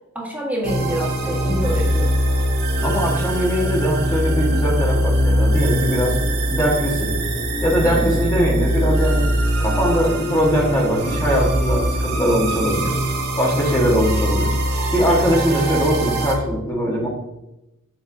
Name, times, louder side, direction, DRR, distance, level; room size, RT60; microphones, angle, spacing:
voice 1, 0.1-2.2 7.8-8.2, equal, 10° right, -3 dB, 1.6 m, -27 dB
sound 1, 0.6-16.3, right 1 dB, 55° right, 1.6 m, -22 dB
voice 2, 2.8-6.2 6.5-7.1 7.6-9.3 9.6-12.9 13.4-14.5 14.9-17.1, equal, 15° left, -4 dB, 1.3 m, -21 dB
7.1 x 6.5 x 2.7 m, 0.93 s
head